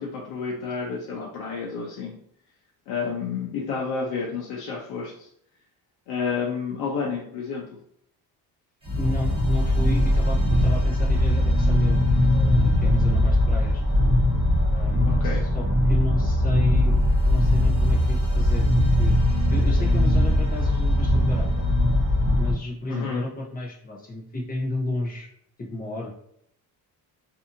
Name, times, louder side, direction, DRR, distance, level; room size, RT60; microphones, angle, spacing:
voice 1, 0.0-2.1 2.9-5.3 6.1-7.6 15.1-15.4 22.9-23.3, left 5 dB, 90° left, -3 dB, 0.7 m, -30 dB
sound 1, 8.8-22.5, left 1 dB, 15° right, 1.0 m, -20 dB
voice 2, 9.0-12.0 12.3-13.8 14.7-21.6 22.4-25.3 25.7-26.1, left 1 dB, 25° left, -2 dB, 0.7 m, -32 dB
2.6 x 2.6 x 2.5 m, 0.70 s
cardioid pair, 140°, 37 cm